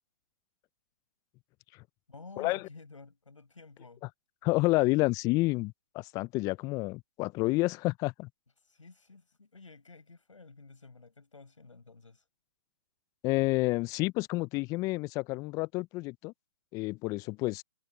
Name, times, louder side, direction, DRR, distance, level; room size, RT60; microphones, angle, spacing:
voice 1, 2.1-4.0 8.7-12.2, left 3 dB, 80° left, 5.8 m, -52 dB
voice 2, 4.4-8.3 13.2-16.3 16.7-17.6, left 22 dB, 20° left, 0.6 m, -29 dB
figure-of-eight pair, 130°, 16 cm